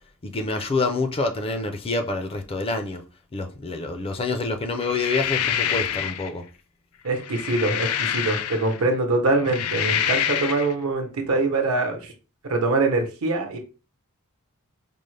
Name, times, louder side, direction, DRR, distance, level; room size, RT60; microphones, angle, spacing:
voice 1, 0.2-3.0 3.3-6.4, left 3 dB, 25° left, 0.4 m, -27 dB
sound 1, 4.8-6.3 7.1-8.8 9.3-10.7, left 9 dB, 85° left, 0.4 m, -26 dB
voice 2, 7.0-12.1 12.4-13.6, right 2 dB, 70° right, 0.9 m, -24 dB
5.2 x 2.0 x 3.2 m
head